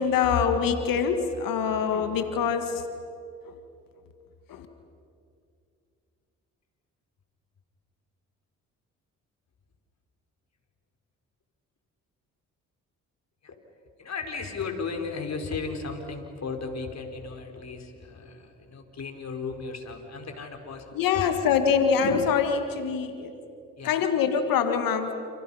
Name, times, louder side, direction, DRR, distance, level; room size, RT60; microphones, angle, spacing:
voice 1, 0.0-2.8 4.5-4.7 20.9-23.3 23.8-25.1, left 6 dB, 80° left, 7 dB, 1.9 m, -24 dB
voice 2, 14.0-21.4 23.8-24.0, left 4 dB, 50° left, 4 dB, 4.7 m, -35 dB
29.5 x 29.5 x 5.7 m, 2.5 s
supercardioid pair, 65°, 34 cm